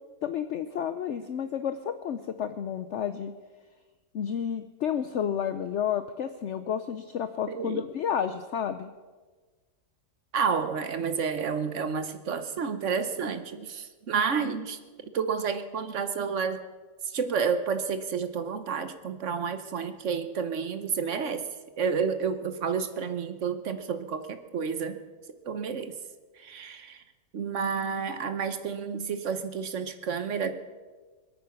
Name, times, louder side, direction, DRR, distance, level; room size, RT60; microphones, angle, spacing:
voice 1, 0.2-3.3 4.1-8.9, left 8 dB, 60° left, 10 dB, 0.8 m, -31 dB
voice 2, 7.5-7.8 10.3-14.8 15.1-16.6 17.1-21.4 21.8-25.0 25.5-25.9 26.4-27.0 27.3-30.5, right 6 dB, 55° right, 10 dB, 1.2 m, -30 dB
25.5 x 8.9 x 5.8 m, 1.4 s
omnidirectional pair, 1.6 m